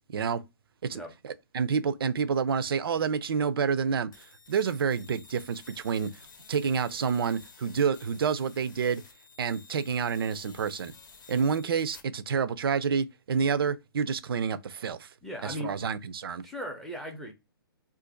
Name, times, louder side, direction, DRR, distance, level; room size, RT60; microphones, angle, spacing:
voice 1, 0.8-4.1 4.5-6.1 6.5-9.0 9.4-10.9 11.3-15.1 15.4-16.4, right 6 dB, 70° right, 0.4 m, -28 dB
sound 1, 4.1-12.0, left 5 dB, 50° left, 0.7 m, -53 dB
voice 2, 15.2-15.7 16.4-17.3, equal, ahead, 0.5 m, -37 dB
2.5 x 2.5 x 3.7 m
hypercardioid pair, 150°, 13 cm